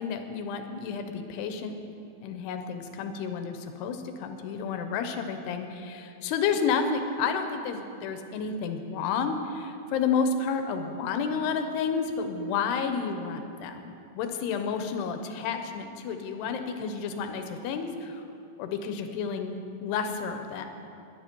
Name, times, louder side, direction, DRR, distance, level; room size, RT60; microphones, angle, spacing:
voice 1, 0.0-1.8 2.2-13.8 14.1-18.2 18.6-20.7, left 5 dB, 90° left, 7 dB, 3.0 m, -30 dB
20.5 x 9.3 x 4.6 m, 2.7 s
omnidirectional pair, 4.6 m